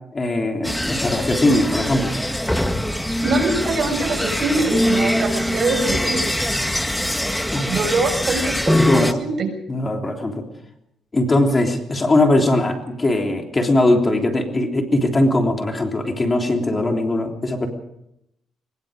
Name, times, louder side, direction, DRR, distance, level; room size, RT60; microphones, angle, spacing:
voice 1, 0.1-2.1 7.5-7.7 8.8-9.2 9.7-10.4 11.1-17.7, left 1 dB, 25° left, 3 dB, 3.4 m, -20 dB
sound 1, 0.6-9.1, left 1 dB, 5° left, 1.7 m, -22 dB
voice 2, 3.2-6.3 7.7-9.5, right 3 dB, 50° right, 5 dB, 6.8 m, -23 dB
23.0 x 21.5 x 5.2 m, 0.80 s
cardioid pair, 90°, 0 cm